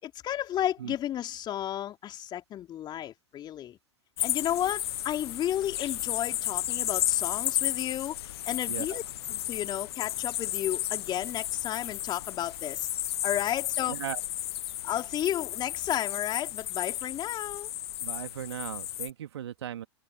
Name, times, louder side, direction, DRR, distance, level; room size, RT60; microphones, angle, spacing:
voice 1, 0.0-3.8 4.2-9.0 9.3-12.9 13.2-14.0 14.8-17.7, left 11 dB, 30° left, 3.9 m, -33 dB
sound 1, 4.2-19.1, left 13 dB, 60° left, 1.1 m, -33 dB
voice 2, 8.7-9.0 13.9-14.2 18.0-19.8, right 10 dB, 65° right, 2.6 m, -37 dB
figure-of-eight pair, 95°, 15 cm